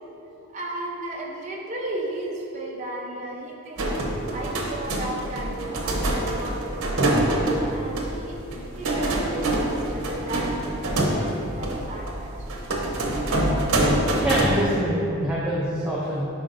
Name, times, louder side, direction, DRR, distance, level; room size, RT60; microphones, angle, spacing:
voice 1, 0.5-3.9 4.1-8.4 8.8-12.5, right 1 dB, 35° right, -3 dB, 0.8 m, -35 dB
sound 1, 3.8-14.6, right 1 dB, 80° right, 0.9 m, -25 dB
voice 2, 14.2-16.3, equal, 5° right, -8 dB, 0.6 m, -25 dB
10.5 x 4.2 x 2.7 m, 2.9 s
head